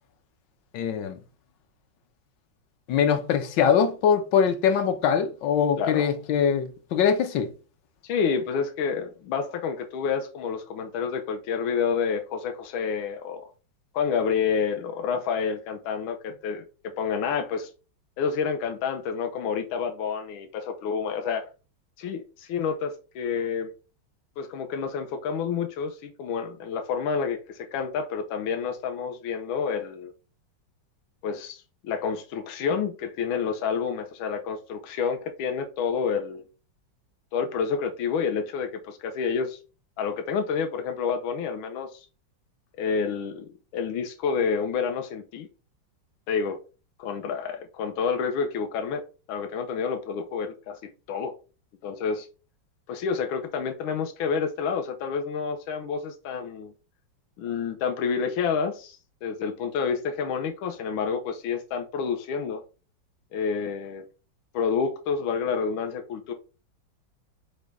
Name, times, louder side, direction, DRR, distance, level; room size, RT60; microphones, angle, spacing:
voice 1, 0.7-1.2 2.9-7.5, left 7 dB, 70° left, 1.2 m, -23 dB
voice 2, 5.8-6.1 8.0-13.5 13.9-16.6 17.0-17.7 18.2-21.5 22.0-23.7 24.4-30.1 31.2-36.4 37.3-39.6 40.0-42.1 42.8-45.5 46.3-46.6 47.0-49.0 49.3-51.3 51.8-52.3 52.9-56.7 57.4-62.6 63.3-64.0 64.5-66.3, left 6 dB, 90° left, 1.4 m, -29 dB
5.1 x 2.2 x 4.6 m
omnidirectional pair, 2.2 m